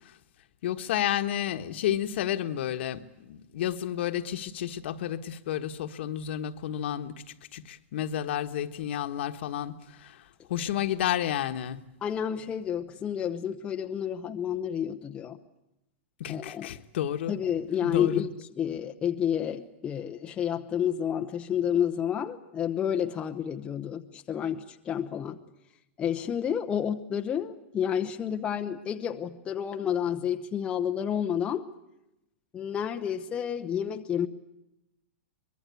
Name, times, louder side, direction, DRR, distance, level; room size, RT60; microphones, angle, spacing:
voice 1, 0.6-7.1 7.5-10.2 10.5-11.8 16.2-17.3 17.8-18.2, left 11 dB, 55° left, 1.4 m, -31 dB
voice 2, 12.0-15.4 16.3-16.7 17.3-25.4 26.0-31.6 32.5-34.3, left 9 dB, 15° left, 0.9 m, -30 dB
24.0 x 22.0 x 8.4 m
hypercardioid pair, 160°, 7 cm